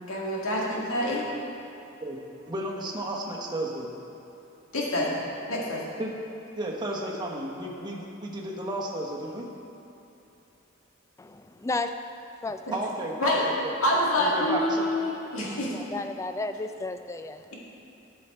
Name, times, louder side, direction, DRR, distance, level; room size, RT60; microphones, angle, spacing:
voice 1, 0.1-1.2 4.7-5.8 13.2-13.4 13.8-15.8, left 1 dB, 90° left, -4 dB, 1.8 m, -26 dB
voice 2, 2.5-3.9 6.0-6.1 6.6-9.4 12.7-13.7 14.2-14.9, right 1 dB, 20° right, -2 dB, 1.1 m, -33 dB
voice 3, 11.2-11.9 12.4-12.8 15.7-17.4, left 3 dB, 15° left, 8 dB, 0.3 m, -33 dB
12.5 x 5.6 x 4.4 m, 2.9 s
head